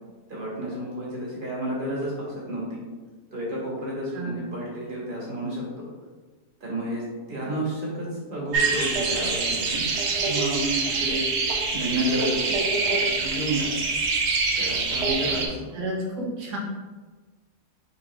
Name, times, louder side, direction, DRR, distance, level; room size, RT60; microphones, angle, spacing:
voice 1, 0.3-2.8 3.3-5.9 6.6-9.8 10.2-11.3 11.7-12.6 12.9-13.7 14.6-15.7, right 1 dB, 35° right, -6 dB, 1.5 m, -31 dB
sound 1, 8.5-15.5, right 4 dB, 60° right, 0.7 m, -25 dB
voice 2, 15.7-16.6, right 1 dB, 80° right, -3 dB, 1.7 m, -32 dB
4.5 x 3.9 x 3.0 m, 1.3 s
omnidirectional pair, 1.8 m